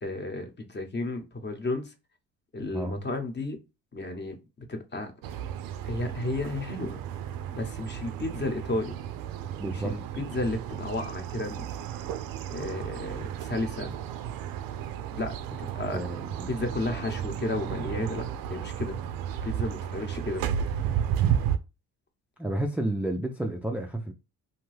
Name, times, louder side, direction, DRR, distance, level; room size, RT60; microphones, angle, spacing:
voice 1, 0.0-1.9 2.5-3.6 3.9-4.4 4.7-5.1 5.8-7.0 7.5-9.0 9.7-11.7 12.5-13.9 15.1-16.0 16.5-18.2 18.5-19.0 19.4-20.4, left 2 dB, 30° left, 0.9 m, -33 dB
sound 1, 5.2-21.6, right 9 dB, 75° right, 0.5 m, -33 dB
voice 2, 9.6-9.9 15.9-16.5 16.9-17.0 22.4-24.1, right 1 dB, 5° right, 0.3 m, -31 dB
2.7 x 2.2 x 3.2 m
cardioid pair, 85°, 36 cm